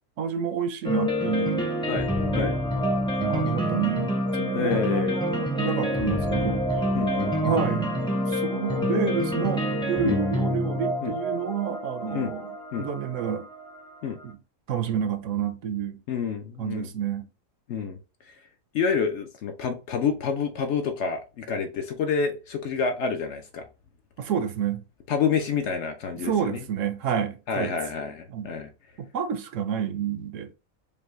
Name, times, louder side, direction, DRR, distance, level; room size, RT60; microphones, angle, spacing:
voice 1, 0.2-1.7 3.2-7.0 7.4-12.5 12.8-13.5 14.2-14.4 14.7-16.0 16.6-17.3 24.2-24.8 26.1-27.7 28.3-28.5 29.0-30.5, right 7 dB, 70° right, 0.9 m, -29 dB
sound 1, 0.8-13.8, equal, 5° left, 0.4 m, -27 dB
voice 2, 4.5-5.2 6.0-6.2 6.9-7.4 10.0-10.2 11.0-11.1 12.1-12.3 12.7-12.9 14.0-14.2 16.1-16.9 17.7-18.0 18.7-23.7 25.1-26.6 27.5-28.7, left 6 dB, 65° left, 0.8 m, -28 dB
5.2 x 2.2 x 3.0 m
omnidirectional pair, 1.5 m